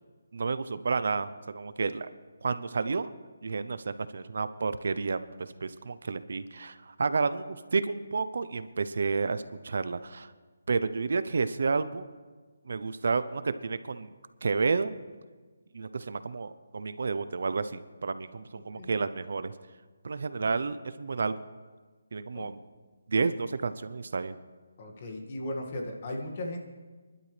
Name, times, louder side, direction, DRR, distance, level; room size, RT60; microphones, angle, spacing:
voice 1, 0.3-1.3 1.5-2.1 2.4-3.1 3.4-5.2 5.6-10.3 10.7-12.1 12.7-14.1 14.4-15.0 15.7-19.5 20.0-21.4 22.1-22.6 23.1-24.4, right 4 dB, 60° right, 13 dB, 0.7 m, -30 dB
voice 2, 24.8-26.6, left 1 dB, 35° left, 1 dB, 2.0 m, -36 dB
27.0 x 12.0 x 3.3 m, 1.4 s
hypercardioid pair, 170°, 0 cm